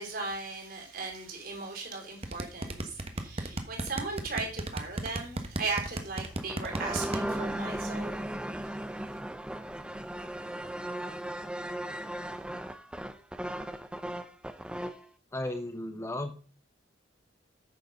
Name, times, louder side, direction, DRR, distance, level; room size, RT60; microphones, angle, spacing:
voice 1, 0.0-8.2, right 4 dB, 55° right, 3.9 m, -37 dB
sound 1, 2.2-7.2, right 2 dB, 35° right, 1.2 m, -33 dB
sound 2, 6.2-15.1, right 1 dB, 5° right, 0.6 m, -36 dB
voice 2, 15.3-16.3, left 1 dB, 15° left, 0.9 m, -34 dB
9.4 x 6.9 x 5.4 m
head